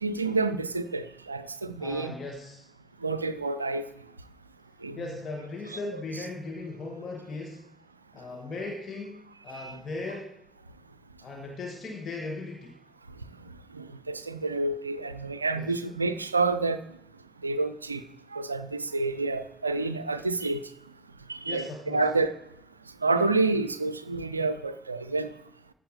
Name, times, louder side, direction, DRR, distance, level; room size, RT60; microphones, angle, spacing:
voice 1, 0.0-2.2 3.0-3.9 4.8-5.0 9.5-9.7 13.7-16.8 17.4-18.0 18.3-20.6 21.3-22.3 23.0-25.3, right 3 dB, 90° right, 12 dB, 0.3 m, -28 dB
voice 2, 1.8-2.6 5.0-7.7 8.1-10.3 11.2-12.8 15.5-15.8 21.5-22.1, left 3 dB, 45° left, 0 dB, 1.5 m, -38 dB
14.0 x 4.7 x 4.0 m, 0.74 s
figure-of-eight pair, 40°, 0 cm